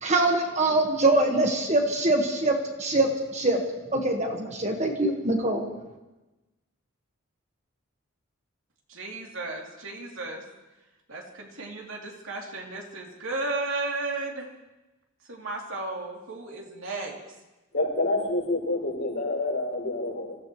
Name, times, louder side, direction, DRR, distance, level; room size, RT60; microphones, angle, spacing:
voice 1, 0.0-3.6 3.9-5.7, right 2 dB, 30° right, 2 dB, 1.4 m, -24 dB
voice 2, 8.9-10.4 11.1-14.5 15.3-17.1, right 2 dB, 70° right, -1 dB, 2.9 m, -34 dB
voice 3, 17.7-20.4, left 2 dB, 55° left, -5 dB, 6.1 m, -28 dB
26.5 x 15.0 x 3.1 m, 1.1 s
head